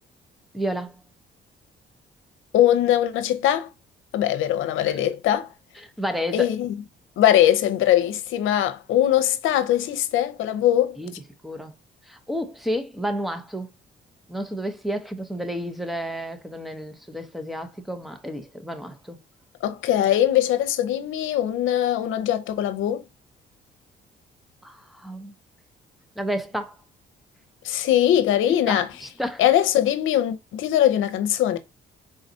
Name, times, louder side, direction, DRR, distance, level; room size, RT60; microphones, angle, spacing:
voice 1, 0.5-1.0 4.9-5.0 5.8-6.5 11.0-11.1 11.4-11.7 12.1-13.7 14.3-19.2 24.6-25.3 26.2-26.8 28.5-29.4, equal, ahead, 0.7 m, -31 dB
voice 2, 2.5-3.7 4.1-5.5 6.3-6.8 7.2-11.0 19.6-23.0 27.6-28.9 29.4-31.6, left 11 dB, 85° left, 0.7 m, -21 dB
4.0 x 3.8 x 2.7 m
cardioid pair, 90°, 20 cm